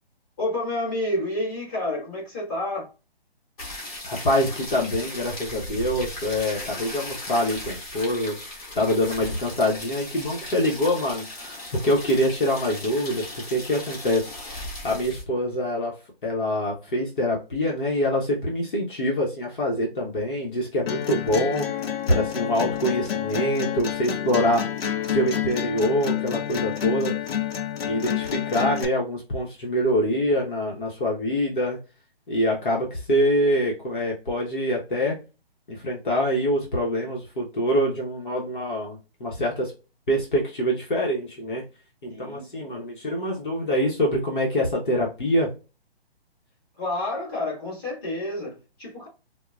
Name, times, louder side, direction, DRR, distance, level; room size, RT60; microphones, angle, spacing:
voice 1, 0.4-2.9 42.1-42.8 46.7-49.1, left 1 dB, 20° left, -8 dB, 1.8 m, -29 dB
sound 1, 3.6-15.2, left 1 dB, 35° left, 2.0 m, -37 dB
voice 2, 4.0-8.4 8.7-14.3 14.8-16.0 16.2-21.7 22.1-24.6 25.0-27.1 27.8-31.8 32.3-35.2 35.7-39.7 40.1-41.7 42.0-45.5, equal, 55° left, -3 dB, 1.2 m, -25 dB
sound 2, 20.9-28.8, left 10 dB, 70° left, 0.7 m, -28 dB
4.5 x 2.3 x 2.4 m, 0.31 s
hypercardioid pair, 170°, 31 cm